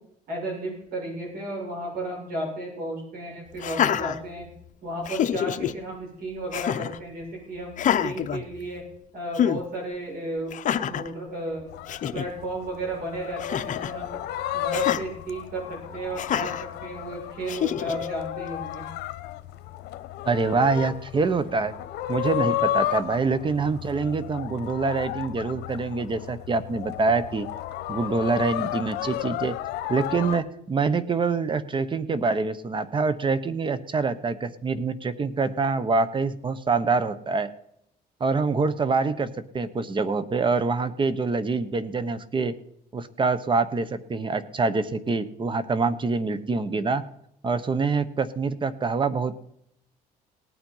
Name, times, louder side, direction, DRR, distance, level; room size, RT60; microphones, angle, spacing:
voice 1, 0.3-4.5 4.8-8.8 9.1-10.5 10.8-11.6 12.1-14.2 14.5-16.5 16.8-18.9, right 1 dB, 60° right, -1 dB, 6.9 m, -33 dB
Laughter, 3.6-4.7 5.0-5.7 6.5-7.0 7.7-9.0 9.3-9.6 10.5-11.1 11.6-11.7 11.9-12.3 13.4-14.0 14.7-15.0 16.2-16.6 17.5-18.1, left 9 dB, 50° left, 0.8 m, -27 dB
sound 1, 11.7-30.4, left 14 dB, 80° left, 0.9 m, -33 dB
voice 2, 20.2-21.7 22.1-27.5 27.9-29.6 29.9-37.5 38.2-42.5 42.9-47.0 47.4-49.4, right 4 dB, 30° right, 15 dB, 1.0 m, -25 dB
18.5 x 9.1 x 5.6 m, 0.75 s
cardioid pair, 110°, 17 cm